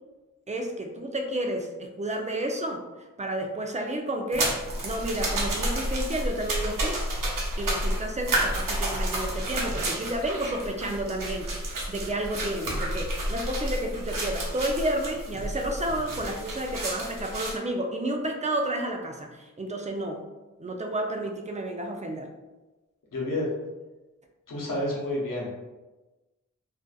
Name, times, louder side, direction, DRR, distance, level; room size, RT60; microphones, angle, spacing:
voice 1, 0.5-2.8 3.2-4.6 4.8-7.0 7.6-20.2 20.6-22.3, right 1 dB, 20° right, 3 dB, 0.4 m, -31 dB
sound 1, 4.3-17.6, right 1 dB, 70° right, 0.7 m, -30 dB
voice 2, 23.1-23.5 24.5-25.5, left 1 dB, 75° left, -4 dB, 0.8 m, -29 dB
2.5 x 2.4 x 2.3 m, 1.1 s
cardioid pair, 40°, 33 cm